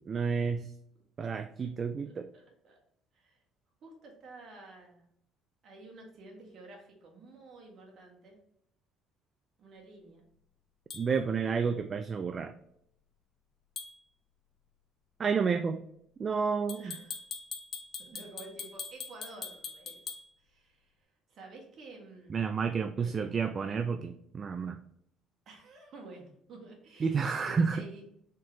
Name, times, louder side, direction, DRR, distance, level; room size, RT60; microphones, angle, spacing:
voice 1, 0.1-0.7 1.2-2.3 10.9-12.5 15.2-15.8 16.2-16.9 22.3-24.8 27.0-27.8, right 5 dB, 35° right, 8 dB, 0.3 m, -30 dB
voice 2, 2.1-2.8 3.1-3.4 3.8-5.0 5.6-8.4 9.6-10.2 16.7-17.2 18.0-20.0 20.4-22.4 22.9-23.2 25.5-28.4, right 2 dB, 55° right, -1 dB, 1.7 m, -51 dB
sound 1, 10.9-11.0 13.8-14.0 16.7-20.2, left 6 dB, 45° left, 0.8 m, -42 dB
4.4 x 3.7 x 3.1 m, 0.72 s
cardioid pair, 95°, 0 cm